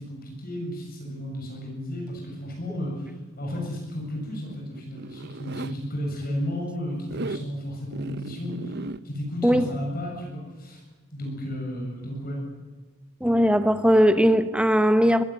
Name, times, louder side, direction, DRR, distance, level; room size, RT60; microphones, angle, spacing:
voice 1, 0.0-10.8 11.1-12.4, equal, 45° left, 7.5 m, -33 dB
Zipper (clothing), 4.1-5.7 7.0-7.5 7.9-9.0, right 2 dB, 50° right, 0.8 m, -36 dB
voice 2, 13.2-15.2, equal, 5° right, 1.2 m, -19 dB
23.5 x 19.5 x 9.6 m
head